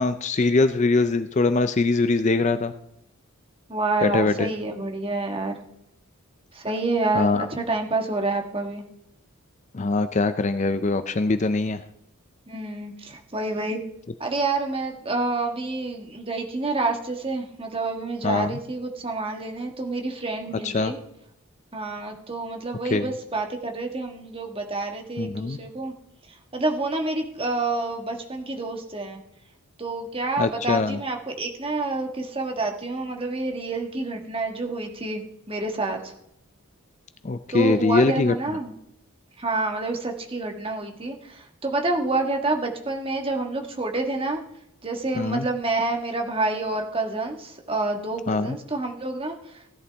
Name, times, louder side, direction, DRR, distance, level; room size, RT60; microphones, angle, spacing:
voice 1, 0.0-2.7 4.0-4.5 7.2-7.5 9.7-11.8 18.2-18.6 20.6-20.9 22.9-23.1 25.2-25.6 30.4-31.0 37.2-38.6 45.2-45.4 48.3-48.6, left 3 dB, 30° left, 11 dB, 0.4 m, -22 dB
voice 2, 3.7-5.6 6.5-8.8 12.5-13.8 14.2-21.0 21.7-25.9 26.3-29.2 29.8-36.1 37.5-38.7 39.4-44.4 44.8-49.6, right 2 dB, 25° right, 3 dB, 1.4 m, -28 dB
16.5 x 11.0 x 3.5 m, 0.77 s
head